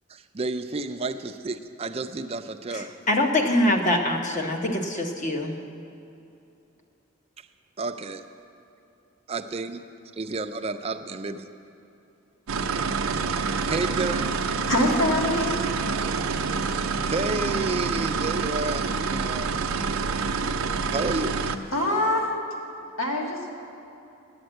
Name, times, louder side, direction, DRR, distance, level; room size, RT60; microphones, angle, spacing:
voice 1, 0.1-2.9 7.4-7.5 7.8-8.2 9.3-9.8 10.1-11.5 13.7-14.4 16.9-20.5 20.9-21.6, right 3 dB, 30° right, 7 dB, 0.4 m, -31 dB
voice 2, 2.7-5.6, left 1 dB, 35° left, 3 dB, 0.9 m, -24 dB
sound 1, 12.5-21.6, right 5 dB, 90° right, 0.6 m, -27 dB
voice 3, 14.7-15.7 21.7-22.3 23.0-23.5, left 1 dB, 75° left, -1 dB, 1.8 m, -24 dB
10.0 x 8.8 x 7.8 m, 2.7 s
head